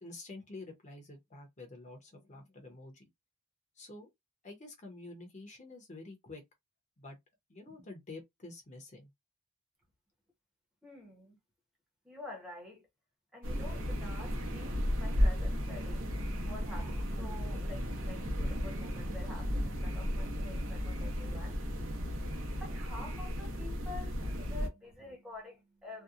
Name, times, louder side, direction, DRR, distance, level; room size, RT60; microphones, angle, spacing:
voice 1, 0.0-3.1 3.8-4.1 4.4-6.4 7.0-7.2 7.5-9.1, left 2 dB, 35° left, 0.7 m, -48 dB
voice 2, 10.8-11.4 12.0-12.9 13.3-22.0 22.6-26.0, left 2 dB, 5° right, 0.8 m, -48 dB
sound 1, 13.4-24.7, equal, 70° right, 0.8 m, -34 dB
2.7 x 2.2 x 2.4 m
head